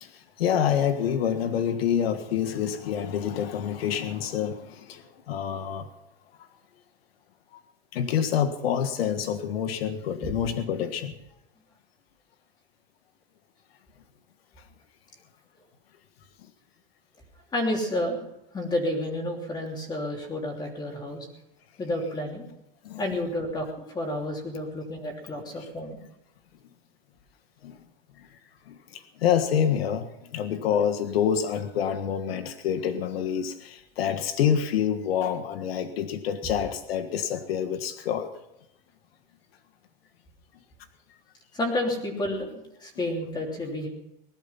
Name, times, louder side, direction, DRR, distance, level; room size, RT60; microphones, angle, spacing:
voice 1, 0.0-5.9 7.9-11.1 22.8-23.0 25.6-25.7 27.6-27.8 28.2-28.3 28.7-38.3, left 8 dB, 85° left, 9 dB, 1.6 m, -27 dB
voice 2, 17.5-18.2 18.5-21.3 21.8-22.5 23.0-23.7 23.9-26.0 41.5-42.5 42.8-43.9, left 1 dB, 15° left, 1 dB, 3.3 m, -30 dB
19.5 x 12.5 x 5.8 m, 0.86 s
supercardioid pair, 155°, 29 cm